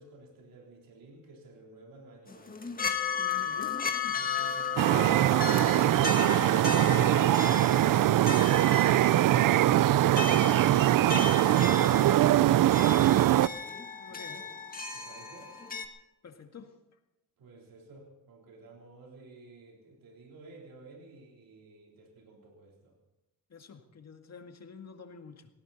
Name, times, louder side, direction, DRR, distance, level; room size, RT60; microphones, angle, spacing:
voice 1, 0.0-2.7 3.4-3.8 4.1-4.8 14.1-14.5 14.9-15.5 17.4-22.9, right 2 dB, 85° right, 0 dB, 3.8 m, -51 dB
sound 1, 2.3-15.9, left 5 dB, 25° left, 1.7 m, -35 dB
voice 2, 3.4-3.8 4.0-4.3 14.0-14.5 16.2-16.8 23.5-25.5, left 5 dB, 50° left, 5 dB, 2.0 m, -49 dB
sound 2, 4.8-13.5, right 13 dB, 70° right, 0.5 m, -22 dB
19.0 x 17.5 x 4.2 m, 0.96 s
cardioid pair, 100°, 34 cm